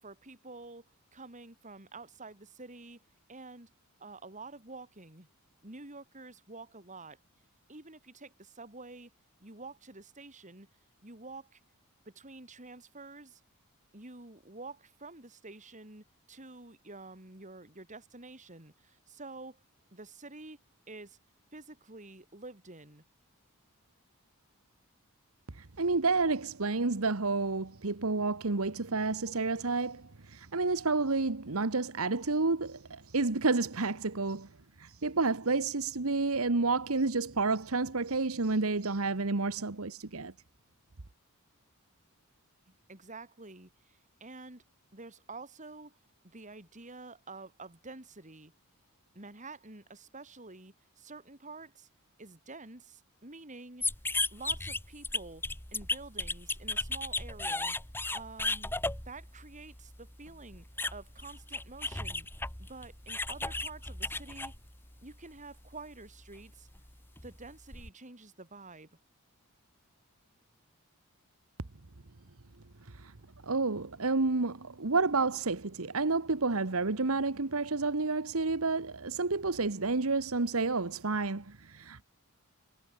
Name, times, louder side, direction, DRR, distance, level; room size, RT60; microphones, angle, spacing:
voice 1, 0.0-3.0 3.3-3.7 4.0-5.3 5.6-7.2 7.7-9.1 9.4-10.7 11.0-11.6 12.1-13.4 13.9-19.6 19.9-20.6 20.9-21.2 21.5-23.0 42.7-44.6 44.9-46.0 46.2-48.5 49.1-51.9 52.2-53.9 54.3-55.4 55.7-57.8 58.1-58.7 59.1-60.6 60.9-62.3 62.6-64.5 65.0-66.7 67.2-68.9, right 3 dB, 35° right, 4.1 m, -48 dB
voice 2, 25.5-34.5 34.8-40.3 72.9-73.1 73.4-82.0, right 3 dB, 65° right, 1.3 m, -30 dB
sound 1, 53.8-65.2 65.5-67.9, left 2 dB, 10° left, 3.1 m, -36 dB
head